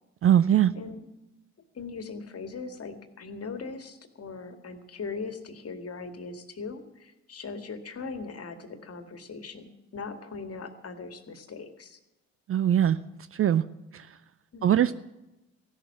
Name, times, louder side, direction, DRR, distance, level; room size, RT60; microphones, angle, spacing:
voice 1, 0.2-0.7 12.5-13.0 13.3-13.6 13.9-14.1 14.6-14.9, right 10 dB, 35° right, 16 dB, 0.6 m, -21 dB
voice 2, 0.7-1.1 1.7-12.0 14.5-14.9, left 4 dB, 35° left, 7 dB, 2.1 m, -40 dB
15.5 x 12.0 x 7.4 m, 0.98 s
figure-of-eight pair, 45°, 39 cm